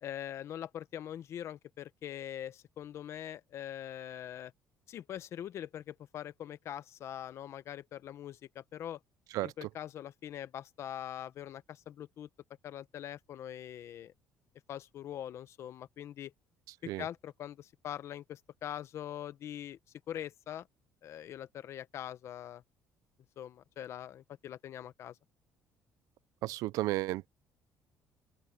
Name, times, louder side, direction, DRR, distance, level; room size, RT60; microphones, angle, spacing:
voice 1, 0.0-4.5 4.9-9.0 9.4-12.3 12.6-14.1 14.7-16.3 16.8-19.8 20.1-20.7 21.0-22.6 23.4-25.2, left 10 dB, 50° left, 1.0 m, -43 dB
voice 2, 9.3-9.7 16.9-17.1 26.4-27.3, right 17 dB, 80° right, 0.5 m, -33 dB
open air
cardioid pair, 150°, 6 cm